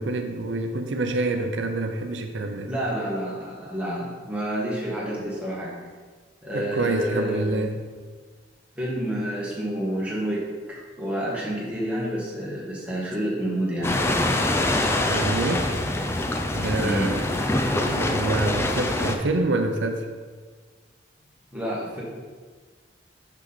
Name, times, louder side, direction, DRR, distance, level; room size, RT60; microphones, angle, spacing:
voice 1, 0.0-2.7 6.5-7.8 15.0-15.8 16.5-17.3 17.6-20.1, right 2 dB, 85° right, 5 dB, 0.6 m, -27 dB
voice 2, 2.7-5.8 6.4-7.6 8.8-10.4 10.7-14.4 16.8-17.2 21.5-22.0, right 1 dB, 5° right, -6 dB, 1.6 m, -29 dB
sound 1, 13.8-19.2, left 1 dB, 15° left, 0.4 m, -24 dB
5.9 x 5.8 x 4.0 m, 1.5 s
head